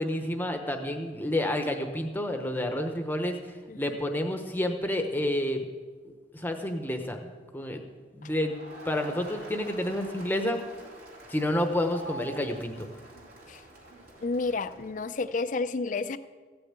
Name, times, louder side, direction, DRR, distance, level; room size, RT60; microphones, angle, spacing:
voice 1, 0.0-5.7 6.3-7.9 8.1-10.6 11.3-12.9, left 1 dB, 10° left, 5 dB, 0.9 m, -30 dB
Crowd, 8.2-15.3, right 1 dB, 55° right, 3.1 m, -47 dB
voice 2, 14.2-16.2, left 3 dB, 45° left, 12 dB, 0.5 m, -31 dB
15.0 x 6.8 x 8.8 m, 1.5 s
head